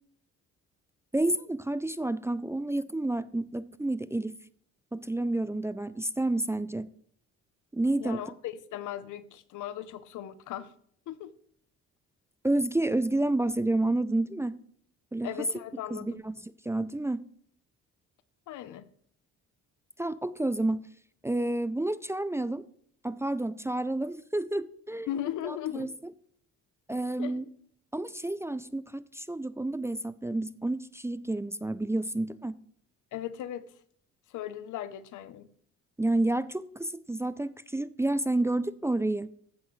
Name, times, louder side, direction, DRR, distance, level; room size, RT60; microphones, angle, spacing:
voice 1, 1.1-4.3 4.9-6.9 7.7-8.2 12.4-14.6 15.1-15.3 15.9-16.3 16.7-17.2 20.0-20.8 21.2-22.6 23.0-25.1 25.4-25.9 26.9-27.4 27.9-32.6 36.0-39.3, right 2 dB, 10° right, 0.4 m, -29 dB
voice 2, 8.0-10.7 11.1-11.3 15.2-16.2 18.5-18.9 25.1-25.9 27.2-27.5 33.1-33.6 34.3-35.5, left 11 dB, 80° left, 0.8 m, -37 dB
14.5 x 7.8 x 3.2 m
cardioid pair, 90°, 30 cm